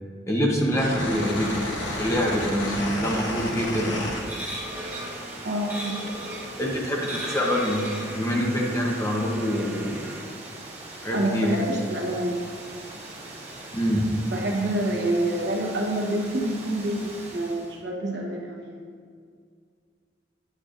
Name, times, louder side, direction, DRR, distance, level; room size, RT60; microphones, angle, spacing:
voice 1, 0.3-1.6 2.0-4.1 6.6-7.8 8.1-10.0 11.0-11.7 13.7-14.0, equal, 15° left, -1 dB, 0.8 m, -25 dB
Water, 0.6-17.8, right 2 dB, 35° right, 1.4 m, -42 dB
sound 1, 0.7-4.8 5.1-6.1, left 1 dB, 90° left, 1.0 m, -32 dB
sound 2, 3.5-10.2, right 1 dB, 10° right, 1.2 m, -37 dB
voice 2, 5.4-6.0 11.1-12.4 14.3-18.8, right 1 dB, 65° right, -1 dB, 1.1 m, -27 dB
8.7 x 6.5 x 2.5 m, 2.1 s
head